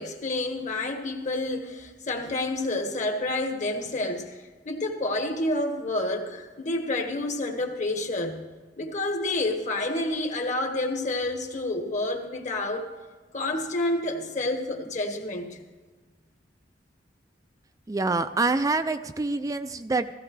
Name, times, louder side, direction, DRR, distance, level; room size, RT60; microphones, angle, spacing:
voice 1, 0.0-8.5 8.8-12.9 13.3-15.6, left 2 dB, 45° left, 3 dB, 1.6 m, -29 dB
voice 2, 17.9-20.1, right 3 dB, 20° right, 10 dB, 0.4 m, -26 dB
16.5 x 16.0 x 3.3 m, 1.3 s
head